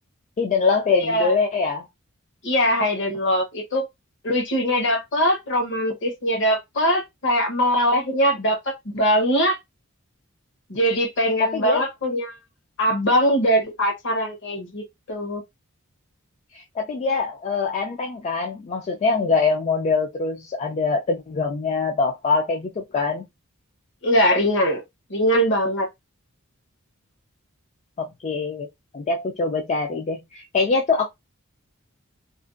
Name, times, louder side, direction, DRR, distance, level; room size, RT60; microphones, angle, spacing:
voice 1, 0.4-1.9 11.4-11.8 16.5-23.3 28.0-28.7 28.9-31.1, left 4 dB, 30° left, 0.3 m, -23 dB
voice 2, 1.0-1.3 2.4-3.9 4.2-9.6 10.7-12.4 12.8-15.4 24.0-24.8 25.1-25.9, equal, 55° left, 0.9 m, -22 dB
2.5 x 2.1 x 2.4 m
head